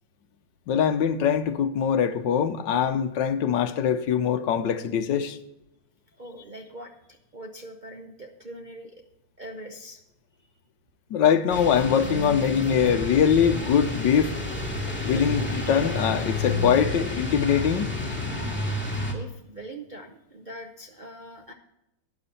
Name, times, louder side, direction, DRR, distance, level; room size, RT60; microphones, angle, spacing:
voice 1, 0.7-5.4 11.1-14.4 15.0-17.9, left 8 dB, 75° left, 1.4 m, -23 dB
voice 2, 6.1-9.0 9.4-10.0 19.0-21.5, right 1 dB, 40° right, 0.6 m, -42 dB
sound 1, 11.5-19.1, left 1 dB, 5° left, 2.0 m, -30 dB
12.0 x 9.4 x 4.2 m
omnidirectional pair, 2.0 m